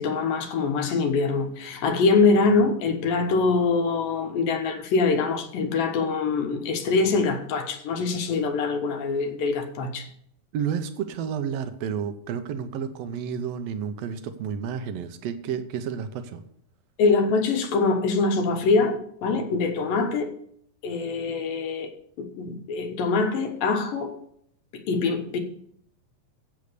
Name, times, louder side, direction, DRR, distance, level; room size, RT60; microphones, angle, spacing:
voice 1, 0.0-10.1 17.0-20.3 20.8-21.9 22.2-24.2 24.7-25.4, left 4 dB, 85° left, 2.9 m, -24 dB
voice 2, 10.5-16.4, right 7 dB, 80° right, 1.5 m, -31 dB
8.4 x 8.0 x 6.7 m
omnidirectional pair, 3.9 m